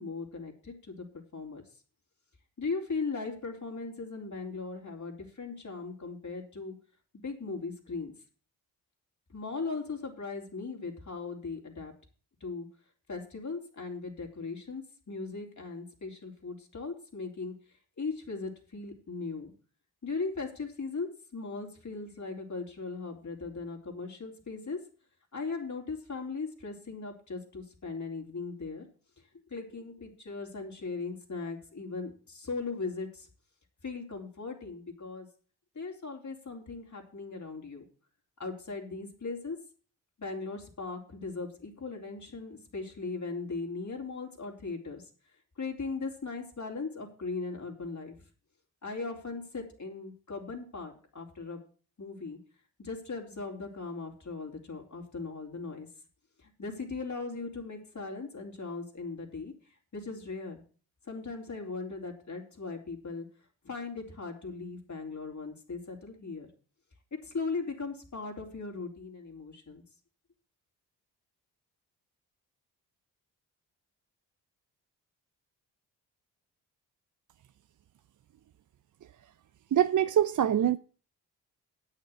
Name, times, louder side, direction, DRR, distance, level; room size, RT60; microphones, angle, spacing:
voice 1, 0.0-1.6 2.6-6.7 7.1-8.1 9.3-11.9 12.4-12.7 13.1-17.5 18.0-19.5 20.0-24.8 25.3-28.8 29.5-33.3 33.8-35.3 35.7-37.8 38.4-39.6 40.2-45.1 45.6-48.2 48.8-51.6 52.0-52.4 52.8-55.9 56.4-59.5 59.9-60.6 61.1-63.3 63.6-66.5 67.2-69.8, left 4 dB, 45° left, 3.9 m, -38 dB
voice 2, 79.7-80.8, right 10 dB, 45° right, 0.6 m, -24 dB
9.0 x 6.6 x 8.1 m
supercardioid pair, 50°, 41 cm